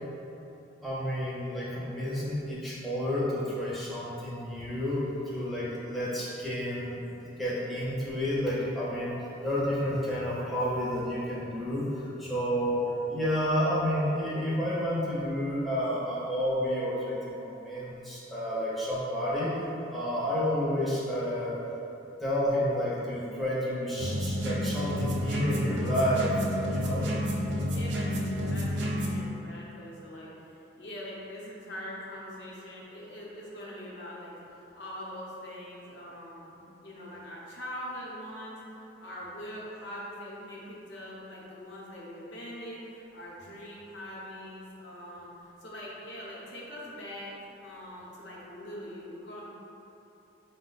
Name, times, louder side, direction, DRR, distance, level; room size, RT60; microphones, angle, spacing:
voice 1, 0.8-7.0 7.4-9.2 9.4-19.5 19.9-21.6 22.2-26.3 26.7-27.1, equal, ahead, -9 dB, 0.6 m, -30 dB
sound 1, 24.0-29.2, equal, 65° right, 0.5 m, -30 dB
voice 2, 27.6-47.3 47.6-49.5, equal, 65° left, -6 dB, 0.8 m, -43 dB
4.4 x 2.2 x 3.9 m, 3.0 s
head